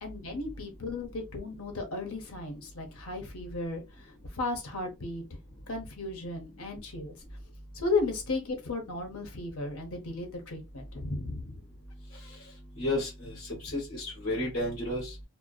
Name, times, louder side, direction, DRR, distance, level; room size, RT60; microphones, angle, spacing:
voice 1, 0.0-4.1 4.3-5.2 5.7-7.2 7.7-11.6, left 3 dB, 75° left, 0.8 m, -35 dB
voice 2, 12.8-15.1, left 1 dB, 50° left, 1.1 m, -32 dB
2.5 x 2.2 x 2.3 m
head